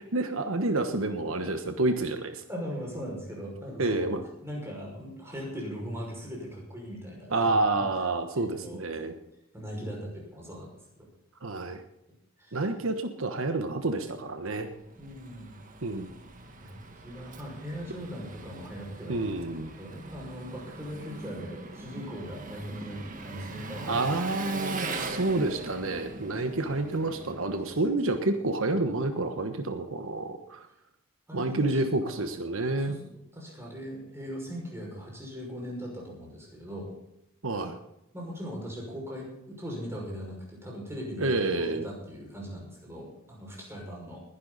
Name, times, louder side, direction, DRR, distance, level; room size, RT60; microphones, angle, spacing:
voice 1, 0.0-2.4 3.8-4.2 7.3-9.1 11.4-11.8 12.5-14.7 15.8-16.1 19.1-19.7 23.9-30.7 31.3-33.0 37.4-37.8 41.2-41.9, right 2 dB, 75° right, 7 dB, 1.2 m, -29 dB
voice 2, 2.5-4.2 4.4-7.5 8.3-9.1 9.5-10.7 11.0-11.1 12.4-12.7 15.0-15.8 16.6-19.2 19.7-24.0 31.3-32.3 32.7-36.9 38.1-44.2, equal, 10° right, -2 dB, 5.8 m, -40 dB
Engine, 14.6-28.1, right 3 dB, 40° right, 1.7 m, -41 dB
20.5 x 11.5 x 4.1 m, 0.83 s
head